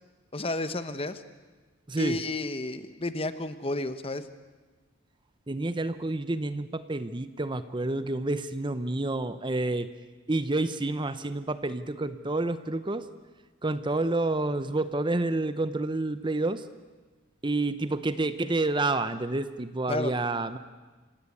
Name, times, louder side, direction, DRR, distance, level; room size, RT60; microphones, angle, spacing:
voice 1, 0.3-1.2 2.0-4.3 19.9-20.1, left 2 dB, 25° left, 11 dB, 1.0 m, -31 dB
voice 2, 1.9-2.2 5.5-9.9 10.3-13.1 13.6-16.7 17.4-20.6, right 2 dB, 20° right, 12 dB, 0.7 m, -29 dB
28.0 x 17.0 x 8.5 m, 1.3 s
head